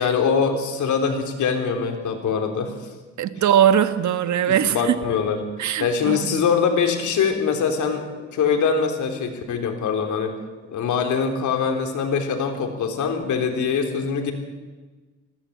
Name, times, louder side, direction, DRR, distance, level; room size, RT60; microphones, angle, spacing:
voice 1, 0.0-2.7 4.5-5.4 5.8-10.3 10.7-14.3, left 6 dB, 75° left, 4 dB, 3.6 m, -23 dB
voice 2, 3.2-5.0 5.6-6.4, right 9 dB, 70° right, 10 dB, 1.5 m, -20 dB
20.0 x 16.5 x 8.6 m, 1.3 s
cardioid pair, 90°, 30 cm